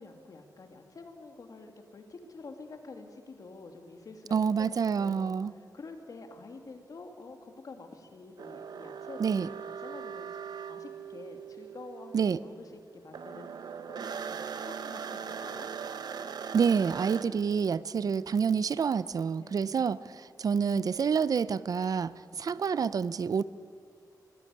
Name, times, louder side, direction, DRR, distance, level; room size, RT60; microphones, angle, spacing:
voice 1, 0.0-10.3 10.7-15.7 19.4-19.9, left 3 dB, 55° left, 5 dB, 2.4 m, -48 dB
voice 2, 4.3-5.5 9.2-9.5 12.1-12.4 16.5-23.4, right 6 dB, 60° right, 17 dB, 0.5 m, -28 dB
sound 1, 8.4-12.8 13.1-17.2, right 6 dB, 80° right, 1.0 m, -40 dB
22.0 x 16.0 x 9.7 m, 2.2 s
wide cardioid pair, 160°, 7 cm